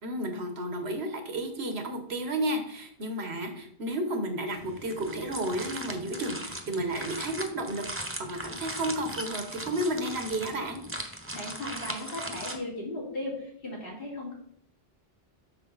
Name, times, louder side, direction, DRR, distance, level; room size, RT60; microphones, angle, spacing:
voice 1, 0.0-10.8, right 1 dB, 90° right, 5 dB, 1.5 m, -32 dB
sound 1, 4.5-12.6, right 1 dB, 15° right, 0.9 m, -39 dB
voice 2, 11.3-14.3, left 1 dB, 65° left, -4 dB, 3.0 m, -36 dB
7.7 x 6.2 x 4.0 m, 0.68 s
omnidirectional pair, 1.0 m